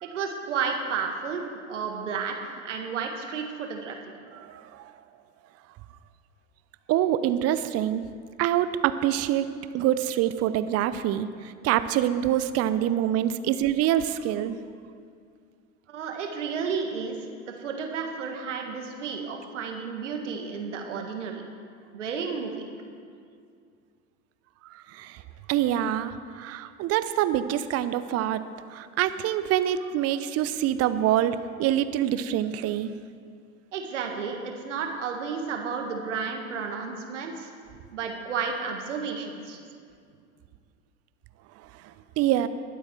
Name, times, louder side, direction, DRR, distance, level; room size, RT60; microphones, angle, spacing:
voice 1, 0.0-4.2 15.9-17.2 17.5-21.4 21.9-22.7 33.7-37.5 37.9-39.6, right 5 dB, 75° right, 3 dB, 1.7 m, -32 dB
voice 2, 4.4-4.9 6.9-8.0 8.4-9.5 9.7-11.3 11.6-14.6 24.7-25.2 25.5-28.4 28.7-32.9 42.2-42.5, right 11 dB, 40° right, 12 dB, 0.7 m, -25 dB
21.0 x 8.0 x 4.5 m, 2.3 s
figure-of-eight pair, 75°, 37 cm